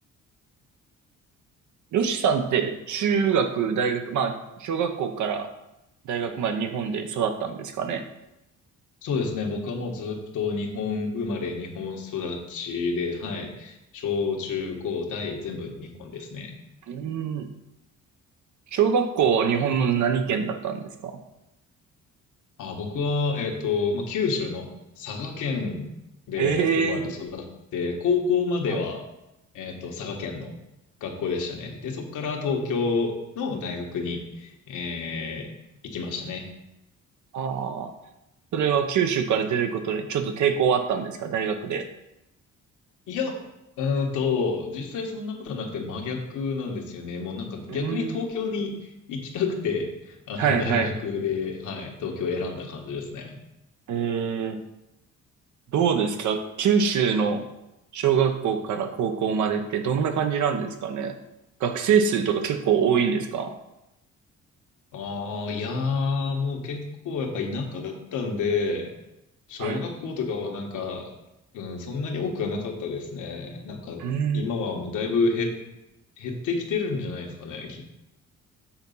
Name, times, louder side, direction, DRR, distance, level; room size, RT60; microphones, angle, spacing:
voice 1, 1.9-5.5 6.0-8.0 16.9-17.5 18.7-21.1 26.4-27.0 28.7-28.8 37.3-37.9 38.5-41.9 47.7-48.1 50.4-50.9 53.9-54.6 55.7-57.4 57.9-61.1 61.6-63.5 69.6-69.8 74.0-74.4, right 7 dB, 75° right, 7 dB, 0.9 m, -24 dB
voice 2, 9.0-16.6 22.6-25.9 26.3-29.0 29.5-30.5 31.0-35.5 35.8-36.4 43.1-43.3 43.8-53.4 64.9-68.9 69.5-71.1 71.5-74.0 74.3-75.5 76.2-77.9, left 4 dB, 85° left, 1 dB, 1.4 m, -29 dB
7.1 x 4.1 x 5.5 m, 0.91 s
cardioid pair, 90°, 30 cm